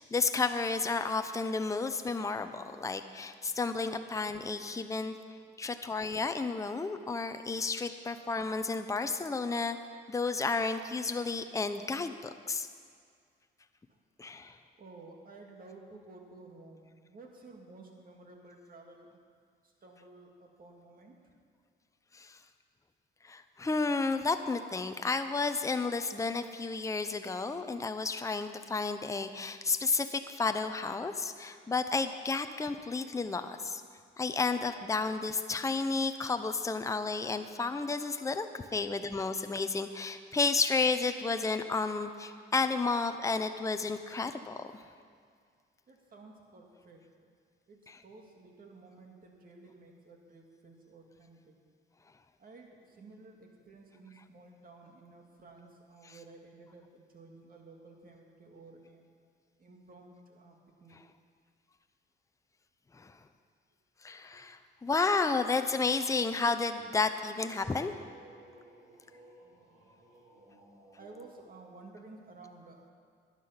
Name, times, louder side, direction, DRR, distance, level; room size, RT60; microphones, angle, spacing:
voice 1, 0.0-5.2 5.6-9.8 10.1-12.7 14.2-14.6 22.1-22.4 23.2-33.8 34.2-44.8 47.9-48.0 62.9-63.1 64.0-67.9, left 4 dB, 15° left, 8 dB, 0.6 m, -32 dB
voice 2, 14.8-19.2 19.6-21.2 45.9-47.3 47.7-51.6 52.4-59.0 59.6-61.0 64.3-64.4 69.4-69.9 70.9-72.9, right 3 dB, 45° right, 1 dB, 2.2 m, -53 dB
sound 1, 66.6-71.5, right 1 dB, 90° right, 3.5 m, -58 dB
12.0 x 9.7 x 5.8 m, 2.1 s
cardioid pair, 90°, 20 cm